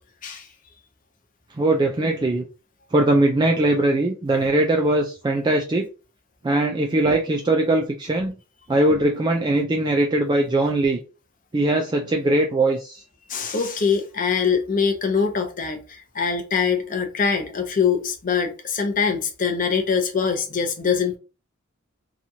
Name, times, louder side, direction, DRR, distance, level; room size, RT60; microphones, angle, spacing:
voice 1, 1.6-2.4 2.9-5.9 6.4-8.3 8.7-11.0 11.5-13.0, right 2 dB, 20° right, 0.3 m, -20 dB
voice 2, 13.3-21.2, left 6 dB, 40° left, 0.6 m, -23 dB
2.9 x 2.3 x 2.7 m
head